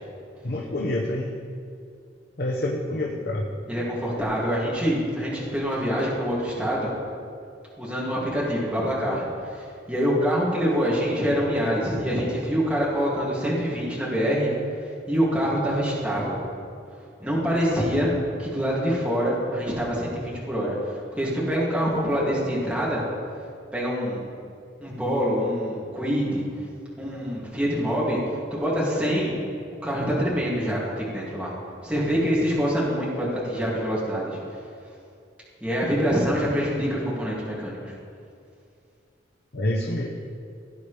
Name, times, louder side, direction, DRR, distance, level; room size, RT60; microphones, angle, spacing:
voice 1, 0.4-1.3 2.4-3.5 39.5-40.1, left 1 dB, 55° left, -1 dB, 0.9 m, -27 dB
voice 2, 3.7-6.9 7.8-14.5 15.1-16.4 17.2-18.1 18.4-23.0 23.3-24.3 24.8-26.4 27.0-29.4 29.8-31.5 31.8-34.4 35.6-37.8, equal, 5° right, -7 dB, 2.6 m, -25 dB
17.5 x 9.1 x 3.4 m, 2.4 s
head